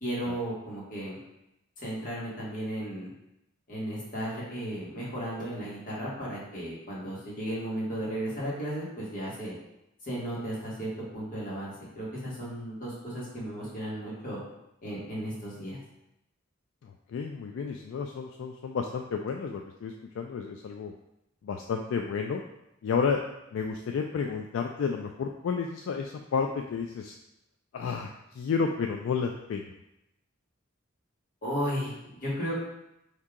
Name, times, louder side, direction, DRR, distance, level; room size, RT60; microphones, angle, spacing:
voice 1, 0.0-1.2 1.8-3.1 3.7-9.5 10.0-14.4 14.8-15.8 31.4-32.6, equal, 45° left, -6 dB, 1.5 m, -35 dB
voice 2, 17.1-20.9 21.4-22.4 22.8-23.2 23.5-27.1 27.7-28.1 28.3-29.7, left 5 dB, 70° left, 3 dB, 0.3 m, -31 dB
3.6 x 2.7 x 4.6 m, 0.86 s
head